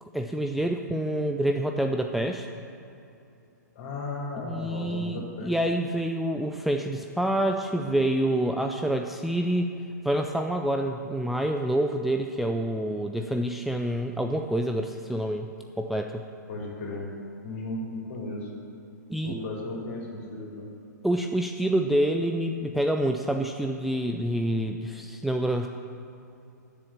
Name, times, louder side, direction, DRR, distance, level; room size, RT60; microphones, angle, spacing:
voice 1, 0.0-2.5 4.4-9.7 10.0-15.5 15.8-16.2 19.1-19.4 21.0-25.7, right 1 dB, ahead, 3 dB, 0.4 m, -27 dB
voice 2, 3.7-5.6 16.5-17.1 17.4-18.5 19.2-20.7, left 2 dB, 45° left, -2 dB, 3.2 m, -35 dB
10.5 x 7.0 x 7.5 m, 2.7 s
figure-of-eight pair, 115°, 10 cm